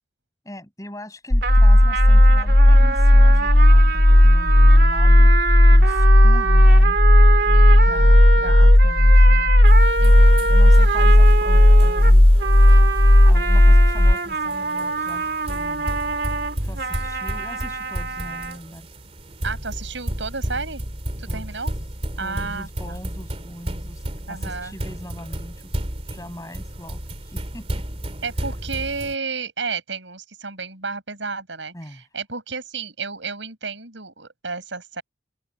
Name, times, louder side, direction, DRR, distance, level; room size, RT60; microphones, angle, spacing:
voice 1, 0.4-5.3 5.7-7.0 7.8-9.5 10.5-12.3 13.2-15.9 16.6-18.9 21.3-21.4 22.2-25.8 26.1-27.8 31.7-32.0, left 1 dB, 20° left, 7.8 m, -40 dB
sound 1, 1.3-14.1, left 1 dB, 35° left, 1.0 m, -13 dB
sound 2, 1.4-18.6, right 4 dB, 60° right, 2.8 m, -26 dB
voice 2, 7.5-8.7 10.0-10.5 19.4-20.8 21.2-21.7 22.2-23.0 24.3-24.7 28.2-35.0, right 4 dB, 85° right, 6.4 m, -32 dB
sound 3, 9.7-29.2, right 1 dB, 35° right, 2.9 m, -33 dB
head